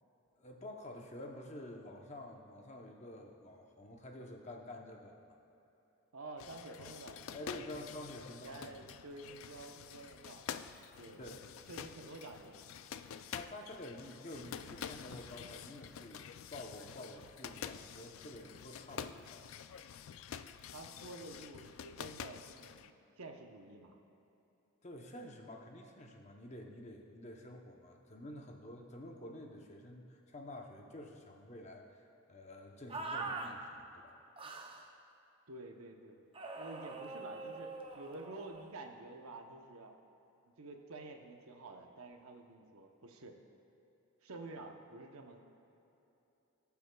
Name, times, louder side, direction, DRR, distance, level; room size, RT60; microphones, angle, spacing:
voice 1, 0.4-5.4 7.3-8.7 11.2-11.4 13.3-16.2 16.5-19.4 24.8-31.8 32.3-34.1, left 1 dB, 30° left, 2 dB, 0.8 m, -49 dB
voice 2, 6.1-7.8 8.3-10.5 11.0-11.2 11.7-12.5 20.7-24.0 35.5-36.2 36.5-39.9 40.4-43.4 44.2-45.4, right 2 dB, 90° right, 4 dB, 0.8 m, -50 dB
sound 1, 6.4-22.9, left 8 dB, 70° left, 0.3 m, -48 dB
sound 2, 32.9-33.5 34.4-34.9 36.3-38.7, right 3 dB, 25° right, 0.5 m, -43 dB
18.5 x 7.0 x 2.3 m, 3.0 s
head